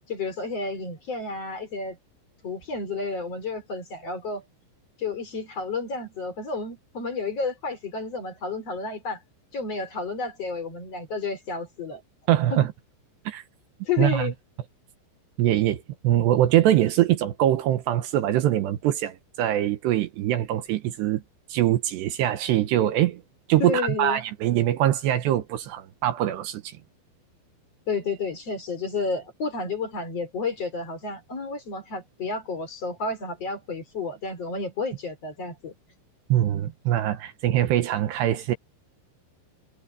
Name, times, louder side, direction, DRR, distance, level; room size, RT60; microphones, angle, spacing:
voice 1, 0.1-2.0 2.4-4.4 5.0-9.2 9.5-12.0 12.5-12.6 13.8-14.3 23.6-24.2 27.9-35.7, left 4 dB, 35° left, 4.3 m, -31 dB
voice 2, 12.3-12.7 13.3-13.4 14.0-14.3 15.4-21.2 21.5-23.2 23.5-26.8 36.3-38.6, right 13 dB, 75° right, 3.0 m, -23 dB
omnidirectional pair, 5.3 m